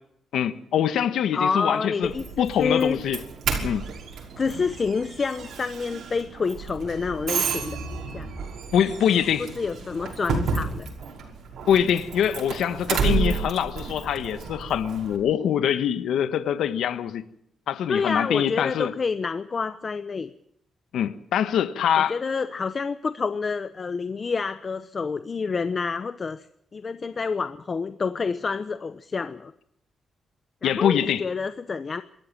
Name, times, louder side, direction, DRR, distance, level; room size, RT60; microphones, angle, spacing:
voice 1, 0.3-2.1 2.4-3.2 3.6-3.8 8.7-9.5 11.7-17.2 17.7-18.9 20.9-22.2 30.6-31.2, left 9 dB, 90° left, 1.3 m, -24 dB
voice 2, 1.3-3.0 4.4-7.8 8.1-8.3 9.4-10.9 12.9-13.5 17.9-20.3 22.1-26.5 26.7-29.5 30.6-32.0, left 5 dB, 40° left, 0.9 m, -28 dB
Doorbell, 2.0-15.2, right 5 dB, 75° right, 5.7 m, -31 dB
26.0 x 14.0 x 7.4 m
cardioid pair, 110°, 0 cm